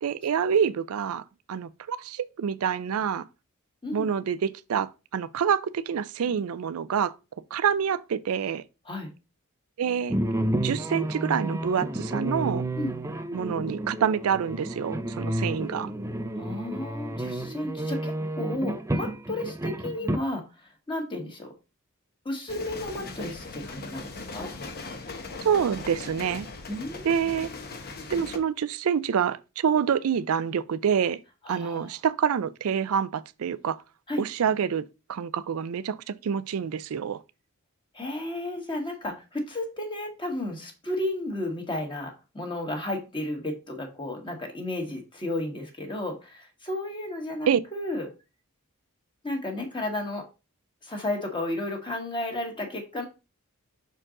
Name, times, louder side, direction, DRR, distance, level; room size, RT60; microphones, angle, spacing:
voice 1, 0.0-3.2 3.9-7.1 7.5-8.6 9.8-10.1 10.6-12.6 13.3-15.9 25.4-26.5 27.0-27.5 28.1-31.2 31.5-33.8 34.2-34.8 35.1-36.0 36.2-37.2 47.5-47.6, right 7 dB, 75° right, 0.4 m, -27 dB
sound 1, 10.1-20.2, right 1 dB, 15° right, 0.5 m, -31 dB
voice 2, 16.3-21.5 22.2-24.5 26.7-27.4 31.4-31.9 34.1-34.2 37.9-48.1 49.2-50.2 50.8-53.1, left 1 dB, 20° left, 1.5 m, -33 dB
sound 2, 22.5-28.4, left 3 dB, 45° left, 1.0 m, -39 dB
6.0 x 4.5 x 3.7 m
head